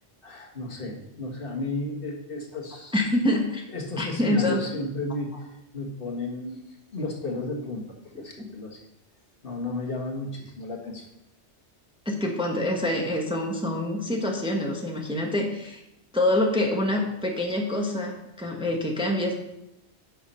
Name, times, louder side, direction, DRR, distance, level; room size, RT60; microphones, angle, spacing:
voice 1, 0.2-3.0 3.7-8.8 9.4-11.1, left 2 dB, 50° left, 0 dB, 1.6 m, -33 dB
voice 2, 2.9-3.6 4.0-4.6 8.4-8.5 12.0-15.8 16.1-19.4, left 1 dB, 5° right, 0 dB, 1.0 m, -26 dB
10.5 x 6.0 x 4.3 m, 0.88 s
omnidirectional pair, 1.2 m